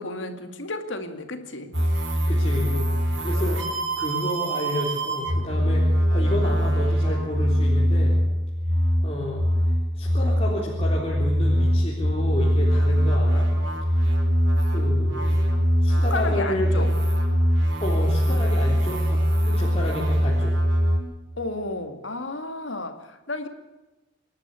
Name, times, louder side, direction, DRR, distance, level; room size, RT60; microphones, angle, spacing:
voice 1, 0.0-1.7 15.9-16.9 18.3-18.5 21.4-23.5, left 2 dB, 70° left, 7 dB, 2.4 m, -32 dB
sound 1, 1.7-21.0, equal, 70° right, 5.3 m, -22 dB
voice 2, 2.3-8.1 8.7-9.5 9.9-13.5 13.8-14.1 14.7-15.4 15.8-16.9 17.8-20.5, left 1 dB, 30° left, -4 dB, 3.7 m, -31 dB
27.0 x 11.5 x 8.4 m, 1.1 s
head